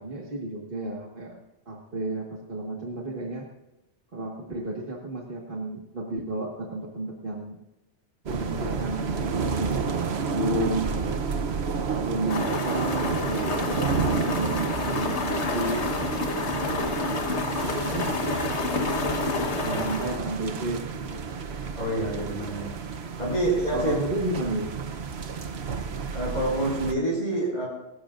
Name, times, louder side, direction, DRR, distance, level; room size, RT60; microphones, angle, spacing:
voice 1, 0.0-1.4 1.7-3.5 4.1-7.6 8.3-11.3 12.0-15.9 16.7-17.3 17.6-18.2 19.6-21.3 23.2-24.7, right 1 dB, 50° right, -1 dB, 2.0 m, -32 dB
sound 1, 8.3-26.9, right 5 dB, 65° right, 1.1 m, -31 dB
sound 2, 12.3-20.2, left 3 dB, 70° left, 1.7 m, -29 dB
voice 2, 21.7-22.7 23.2-24.0 26.1-27.7, right 1 dB, 40° left, -8 dB, 6.8 m, -27 dB
25.5 x 14.0 x 2.6 m, 1.0 s
omnidirectional pair, 1.2 m